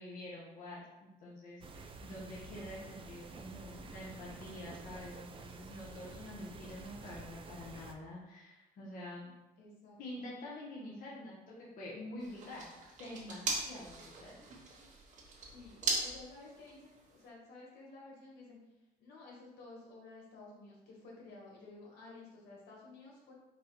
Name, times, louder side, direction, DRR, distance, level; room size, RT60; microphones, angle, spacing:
voice 1, 0.0-9.3 10.0-12.7 13.0-14.4, left 1 dB, 55° left, -5 dB, 1.2 m, -47 dB
sound 1, 1.6-7.9, right 4 dB, 30° right, 0.5 m, -50 dB
voice 2, 9.6-10.2 15.5-15.7 16.0-18.6 19.0-23.3, left 3 dB, 80° left, -3 dB, 1.6 m, -53 dB
sound 2, 12.2-17.3, right 3 dB, 45° right, 1.2 m, -40 dB
4.7 x 2.5 x 4.5 m, 0.98 s
cardioid pair, 110°, 17 cm